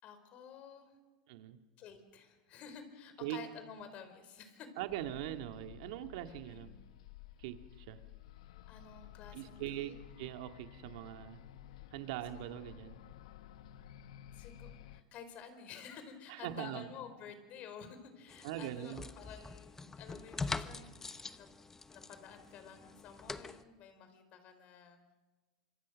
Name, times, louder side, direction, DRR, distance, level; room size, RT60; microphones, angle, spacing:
voice 1, 0.0-1.0 1.8-4.7 6.4-6.7 8.7-10.0 11.7-11.8 14.3-21.5 21.9-25.0, left 6 dB, 45° left, 9 dB, 4.6 m, -51 dB
voice 2, 1.3-1.6 3.2-3.4 4.8-6.7 7.4-7.6 7.9-8.0 9.3-11.4 11.9-13.0 16.4-16.9 18.4-19.1, right 13 dB, 70° right, 7 dB, 2.0 m, -41 dB
sound 1, 4.9-15.0, left 12 dB, 80° left, 1.1 m, -54 dB
sound 2, 18.3-23.6, left 3 dB, 15° left, 1.0 m, -44 dB
26.0 x 24.5 x 6.4 m, 1.2 s
supercardioid pair, 120°, 3 cm